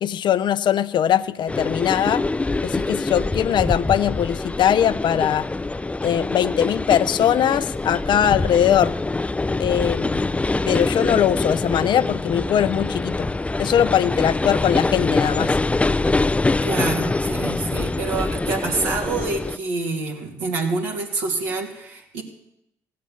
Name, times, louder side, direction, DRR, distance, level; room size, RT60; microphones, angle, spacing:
voice 1, 0.0-2.2 2.6-5.5 6.0-8.9 9.6-10.3 10.7-13.3 13.6-15.6, left 10 dB, 55° left, 14 dB, 0.6 m, -21 dB
sound 1, 1.5-19.6, left 2 dB, 15° left, 0.5 m, -24 dB
voice 2, 16.6-22.2, right 3 dB, 85° right, 0 dB, 2.4 m, -27 dB
16.0 x 7.6 x 7.1 m, 0.84 s
hypercardioid pair, 55°, 9 cm